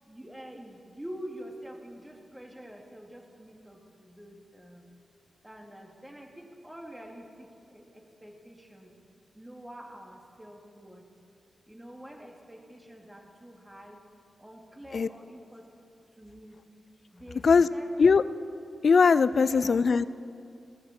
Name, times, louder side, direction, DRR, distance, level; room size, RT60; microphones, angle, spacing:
voice 1, 0.0-4.8 5.4-8.9 9.3-11.1 11.7-14.0 14.4-15.6 16.2-16.6 17.1-17.9 19.3-19.8, equal, 15° right, 1 dB, 2.5 m, -46 dB
voice 2, 18.8-20.0, left 5 dB, 65° left, 16 dB, 0.4 m, -20 dB
16.5 x 14.5 x 4.4 m, 2.5 s
cardioid pair, 45°, 0 cm